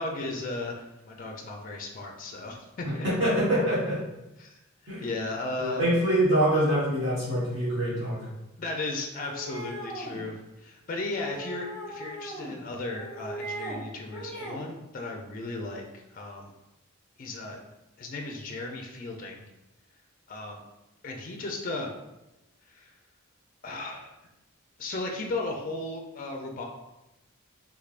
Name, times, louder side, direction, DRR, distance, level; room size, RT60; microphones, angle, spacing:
voice 1, 0.0-3.1 4.4-5.8 8.6-16.5 17.2-17.7 18.0-19.4 20.3-20.6 21.0-21.9 22.7-22.9 23.6-24.1 24.8-26.6, left 2 dB, 40° left, 1 dB, 0.4 m, -35 dB
voice 2, 2.8-4.0 4.9-5.1 5.6-8.3, right 1 dB, 60° right, -10 dB, 1.3 m, -25 dB
sound 1, 9.1-10.2 11.2-12.6 12.9-13.8 14.1-14.6, right 1 dB, 25° right, 1.2 m, -39 dB
3.4 x 3.3 x 2.4 m, 0.95 s
head